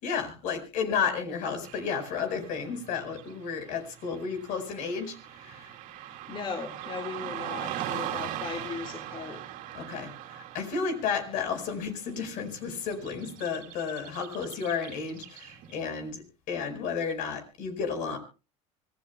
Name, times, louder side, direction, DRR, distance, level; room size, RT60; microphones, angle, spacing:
voice 1, 0.0-5.1 5.4-5.7 9.7-18.2, left 6 dB, 65° left, 6 dB, 4.8 m, -32 dB
Car passing by / Traffic noise roadway noise, 1.6-15.9, right 11 dB, 65° right, 2.6 m, -41 dB
voice 2, 6.1-9.4, left 5 dB, 35° left, 5 dB, 2.0 m, -38 dB
25.0 x 16.5 x 2.3 m, 0.33 s
supercardioid pair, 90°, 15 cm